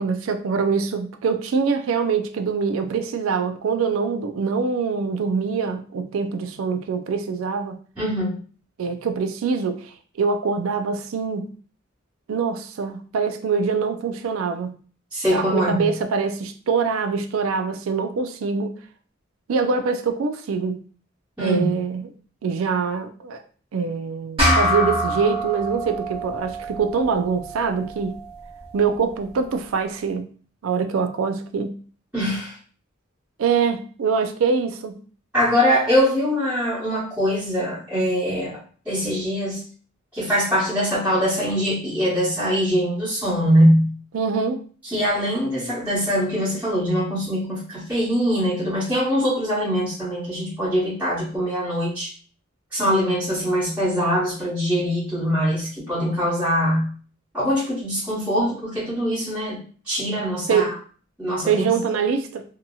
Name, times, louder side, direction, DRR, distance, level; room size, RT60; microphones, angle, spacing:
voice 1, 0.0-7.8 8.8-9.9 10.2-11.5 12.3-14.7 15.3-18.7 19.5-20.8 21.4-22.1 22.4-23.4 23.7-28.2 28.7-30.3 30.6-31.7 33.4-35.0 44.1-44.7 60.5-60.7 61.5-62.4, right 5 dB, 80° right, 7 dB, 0.4 m, -24 dB
voice 2, 8.0-8.4 15.1-15.9 21.4-21.7 32.1-32.6 35.3-38.6 38.8-39.6 40.1-43.9 44.8-52.1 52.7-56.9 57.3-60.7 61.2-61.7, equal, 10° right, -12 dB, 1.2 m, -22 dB
sound 1, 24.4-29.2, equal, 30° right, 1.0 m, -26 dB
2.8 x 2.7 x 2.3 m, 0.42 s
head